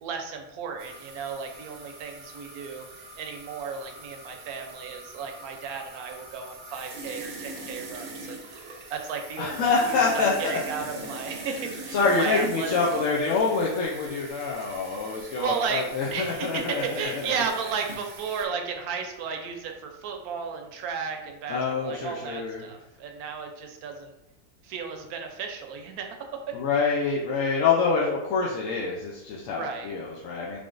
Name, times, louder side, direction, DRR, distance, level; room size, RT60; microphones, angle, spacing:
voice 1, 0.0-2.9 3.2-8.4 8.9-12.8 15.4-24.1 24.6-26.2 26.5-26.6 29.5-29.9, right 6 dB, 85° right, 4 dB, 1.1 m, -34 dB
sound 1, 0.8-18.4, right 3 dB, 65° right, 0.5 m, -42 dB
voice 2, 9.4-10.6 10.9-11.1 11.9-17.3 21.5-22.6 26.5-30.6, left 4 dB, 70° left, -4 dB, 0.9 m, -26 dB
3.7 x 3.4 x 2.5 m, 0.97 s
omnidirectional pair, 1.5 m